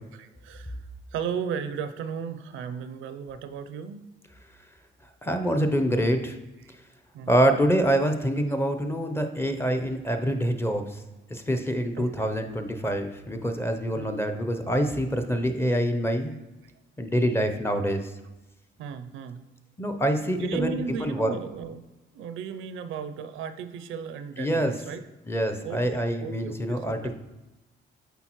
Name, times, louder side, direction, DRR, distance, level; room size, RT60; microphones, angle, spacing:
voice 1, 0.1-0.8 1.1-4.1 6.6-6.7 7.1-7.6 12.0-12.3 13.9-14.2 16.6-16.7 18.8-19.4 20.4-21.8 22.1-25.0 25.6-27.1, right 7 dB, 85° right, 11 dB, 0.5 m, -35 dB
voice 2, 5.2-6.4 7.3-11.0 11.3-16.3 17.0-18.1 19.8-21.3 24.4-24.7 25.3-27.1, equal, 10° left, 7 dB, 0.6 m, -26 dB
8.1 x 4.0 x 3.0 m, 1.1 s
cardioid pair, 90°, 20 cm